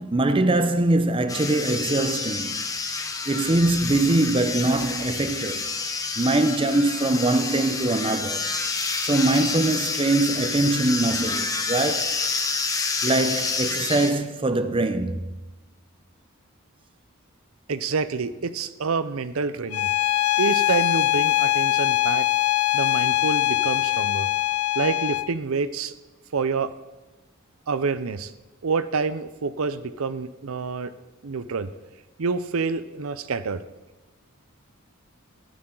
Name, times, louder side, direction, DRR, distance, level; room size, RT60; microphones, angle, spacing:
voice 1, 0.0-2.6 3.3-5.7 6.2-8.5 9.0-12.2 13.0-15.2, right 2 dB, 25° right, 0.6 m, -23 dB
sound 1, 1.3-14.1, left 4 dB, 15° left, 1.0 m, -28 dB
voice 2, 17.7-19.9 20.4-22.3 22.7-24.3 24.8-25.9 26.3-26.7 27.7-28.3 28.6-30.9 31.2-31.7 32.2-33.6, right 4 dB, 75° right, 0.6 m, -27 dB
Bowed string instrument, 19.7-25.3, left 15 dB, 85° left, 0.4 m, -22 dB
13.0 x 11.5 x 3.8 m
head